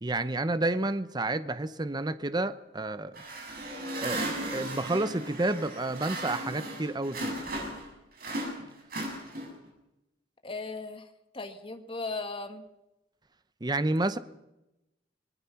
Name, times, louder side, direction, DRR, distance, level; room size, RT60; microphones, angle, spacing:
voice 1, 0.0-3.2 4.0-7.4 13.6-14.2, right 2 dB, 25° right, 13 dB, 0.8 m, -30 dB
sound 1, 3.1-7.9 8.2-9.7, right 1 dB, 55° right, 7.9 m, -36 dB
voice 2, 10.4-11.1 11.3-12.6, left 3 dB, 30° left, 7 dB, 1.7 m, -37 dB
25.0 x 20.0 x 5.9 m, 0.94 s
head